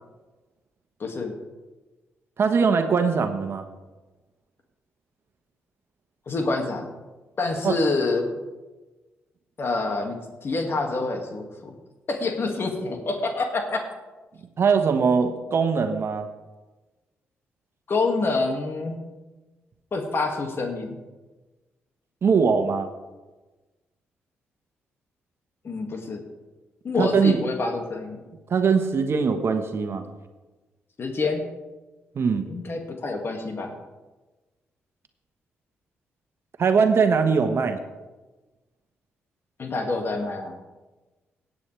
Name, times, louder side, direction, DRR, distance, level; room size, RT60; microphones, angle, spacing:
voice 1, 1.0-1.4 6.3-6.9 7.4-8.3 9.6-11.7 12.1-13.9 17.9-19.0 19.9-21.0 25.6-26.2 26.8-28.2 31.0-31.5 32.5-33.8 39.6-40.5, left 3 dB, 50° left, 3 dB, 2.1 m, -27 dB
voice 2, 2.4-3.7 7.6-7.7 14.6-16.3 22.2-22.9 27.0-27.4 28.5-30.0 32.1-32.5 36.6-37.8, right 5 dB, 55° right, 7 dB, 1.2 m, -21 dB
17.5 x 8.5 x 3.4 m, 1.2 s
supercardioid pair, 50°, 5 cm